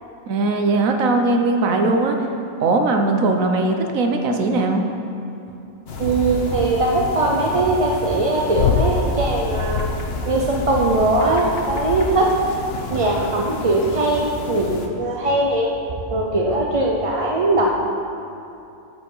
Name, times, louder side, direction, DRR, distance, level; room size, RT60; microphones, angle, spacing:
voice 1, 0.3-2.2 2.6-4.8, right 3 dB, 75° right, 4 dB, 1.3 m, -19 dB
sound 1, 5.9-14.9, left 2 dB, 50° left, 1.1 m, -32 dB
voice 2, 6.0-9.9 10.3-12.5 12.9-15.7 16.1-17.7, right 2 dB, 40° right, -1 dB, 0.5 m, -20 dB
sound 2, 8.5-9.0 9.4-10.0 10.6-11.2 11.7-12.1 12.8-13.1 13.8-14.2 15.1-15.2, left 6 dB, 75° left, 1.0 m, -25 dB
14.0 x 5.1 x 5.5 m, 2.7 s
omnidirectional pair, 1.4 m